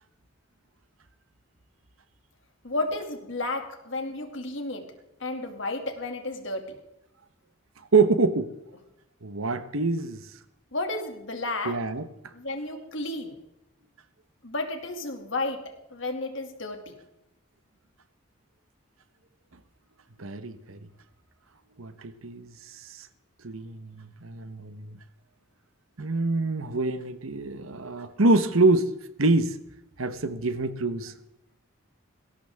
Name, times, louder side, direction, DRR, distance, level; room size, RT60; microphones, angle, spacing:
voice 1, 2.6-4.9 5.2-6.8 10.7-11.8 12.3-13.4 14.4-15.6 15.9-16.9, left 2 dB, 65° left, 2.5 m, -32 dB
voice 2, 7.9-8.5 9.2-10.2 11.6-12.1 20.2-20.8 21.8-22.5 22.9-23.1 23.4-25.0 26.0-28.9 29.2-29.5 30.0-31.1, right 3 dB, 80° right, 1.2 m, -25 dB
19.5 x 17.0 x 3.7 m
head